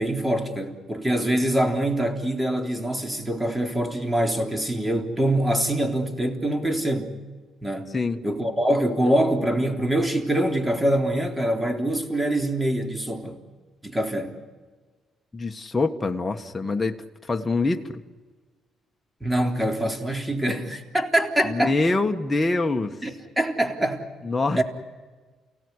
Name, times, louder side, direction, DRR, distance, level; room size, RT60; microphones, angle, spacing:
voice 1, 0.0-7.1 7.6-7.9 8.2-13.4 13.8-14.4 19.2-21.8 23.0-24.1 24.5-24.6, right 1 dB, 10° right, 4 dB, 3.7 m, -24 dB
voice 2, 15.3-18.0 21.4-23.0 24.2-24.6, left 3 dB, 20° left, 4 dB, 1.5 m, -25 dB
30.0 x 17.5 x 9.7 m, 1.4 s
cardioid pair, 90°, 0 cm